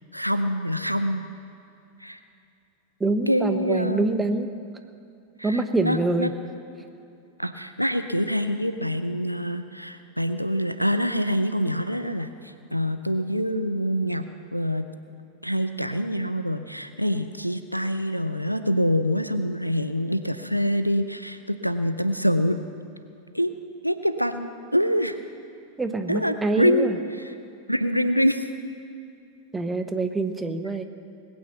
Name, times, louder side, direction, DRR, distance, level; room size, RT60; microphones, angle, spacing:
voice 1, 0.1-1.2 2.0-2.2 3.3-4.1 5.4-6.3 7.4-14.8 15.4-22.6 23.3-23.5 23.8-25.2 26.1-26.9 27.2-27.3 27.7-28.5, equal, 90° right, 9 dB, 0.6 m, -25 dB
voice 2, 3.0-4.5 5.4-6.3 25.8-26.9 29.5-30.8, right 2 dB, 10° right, 8 dB, 0.9 m, -25 dB
20.0 x 9.0 x 6.9 m, 2.6 s
figure-of-eight pair, 90°, 0 cm